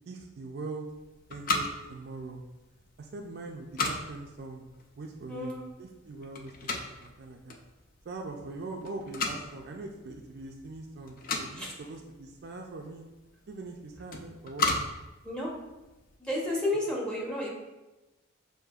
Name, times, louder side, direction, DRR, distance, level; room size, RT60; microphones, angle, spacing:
voice 1, 0.1-0.9 1.3-2.4 3.0-7.6 8.0-13.1 13.5-14.7, right 3 dB, 50° right, 2 dB, 0.4 m, -42 dB
sound 1, 0.9-16.1, left 3 dB, 45° left, 0.4 m, -37 dB
voice 2, 5.3-5.7 11.5-11.7 15.2-15.5 16.2-17.5, left 1 dB, 5° left, -4 dB, 0.8 m, -31 dB
6.4 x 2.6 x 2.3 m, 1.1 s
head